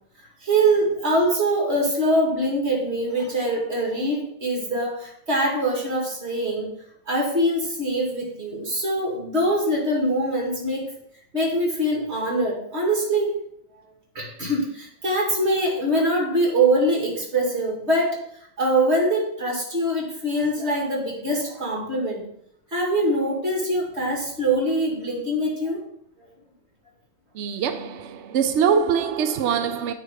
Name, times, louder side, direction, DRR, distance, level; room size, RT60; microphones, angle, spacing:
voice 1, 0.4-6.7 7.1-10.9 11.3-13.4 14.1-18.2 18.6-22.2 22.7-25.8, right 1 dB, 35° right, 2.6 m, -23 dB
voice 2, 27.3-29.9, right 7 dB, 90° right, 0.6 m, -23 dB
9.4 x 4.0 x 4.9 m
omnidirectional pair, 2.0 m